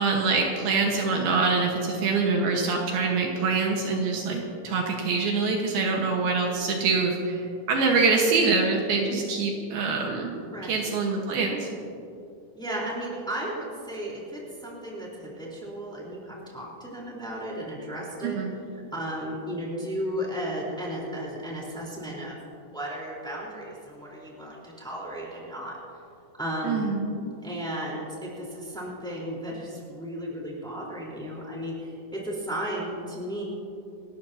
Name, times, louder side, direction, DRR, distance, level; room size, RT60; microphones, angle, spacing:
voice 1, 0.0-7.4 7.7-10.3 10.7-11.7 18.2-18.5 26.6-27.2, right 4 dB, 70° right, 0 dB, 3.2 m, -25 dB
voice 2, 10.5-10.8 12.5-18.4 18.7-25.8 26.4-26.9 27.4-33.4, equal, ahead, -4 dB, 3.3 m, -34 dB
27.5 x 14.0 x 2.8 m, 2.6 s
omnidirectional pair, 4.6 m